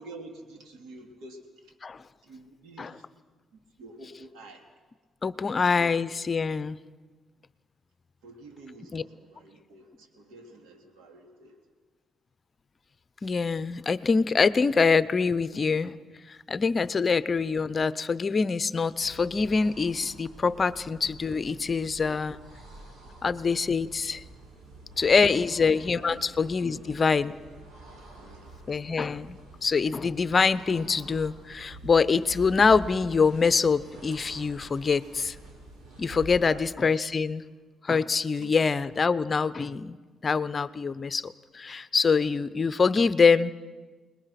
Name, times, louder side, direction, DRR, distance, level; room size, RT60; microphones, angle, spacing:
voice 1, 0.0-1.7 2.2-3.1 3.5-4.6 5.7-5.9 8.2-11.6 26.0-26.2 26.6-27.0 28.0-29.0 36.2-36.7 38.3-38.6 38.9-39.2 40.8-41.0, right 2 dB, 85° right, 4 dB, 3.2 m, -48 dB
voice 2, 5.2-6.8 8.9-9.0 13.2-15.9 16.3-22.4 23.2-24.2 25.0-27.3 28.7-35.4 36.0-37.4 37.8-40.0 40.2-43.5, left 5 dB, 35° left, 16 dB, 0.7 m, -25 dB
sound 1, 18.9-36.6, right 1 dB, 70° right, 5.9 m, -47 dB
28.5 x 20.5 x 5.9 m, 1.4 s
cardioid pair, 90°, 0 cm